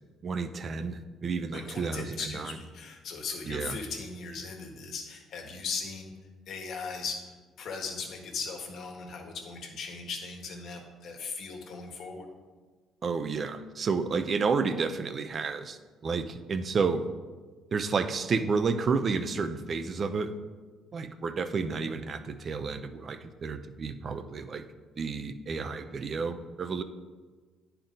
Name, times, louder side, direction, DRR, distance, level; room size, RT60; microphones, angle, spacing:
voice 1, 0.2-2.6 3.5-3.8 13.0-17.0 17.7-20.3 20.9-24.6 25.0-26.8, right 5 dB, 45° right, 10 dB, 0.6 m, -31 dB
voice 2, 1.5-6.1 6.5-7.2 7.6-12.3, left 4 dB, 65° left, 2 dB, 1.5 m, -38 dB
10.0 x 4.6 x 3.8 m, 1.4 s
supercardioid pair, 70°, 0 cm